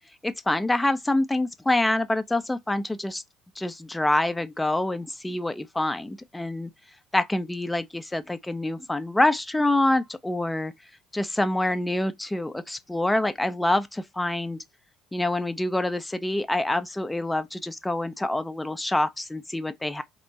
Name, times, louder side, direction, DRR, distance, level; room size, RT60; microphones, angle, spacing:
voice 1, 0.2-3.2 3.6-6.7 7.1-10.7 11.1-14.6 15.1-20.0, left 1 dB, 10° left, 0.5 m, -26 dB
4.2 x 3.0 x 4.0 m
figure-of-eight pair, 55°, 0 cm